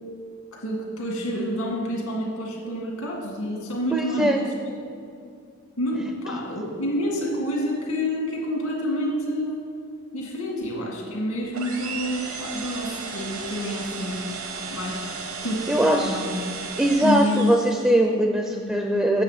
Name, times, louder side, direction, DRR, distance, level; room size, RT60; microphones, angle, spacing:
voice 1, 0.5-4.8 5.8-9.7 10.1-14.2 14.6-16.5 17.0-17.5, equal, 85° left, -1 dB, 2.0 m, -28 dB
voice 2, 3.9-4.4 15.7-16.2 16.8-19.2, right 1 dB, 5° right, 3 dB, 0.4 m, -21 dB
sound 1, 11.5-18.0, right 5 dB, 70° right, 1.0 m, -35 dB
8.1 x 7.1 x 4.1 m, 2.4 s
head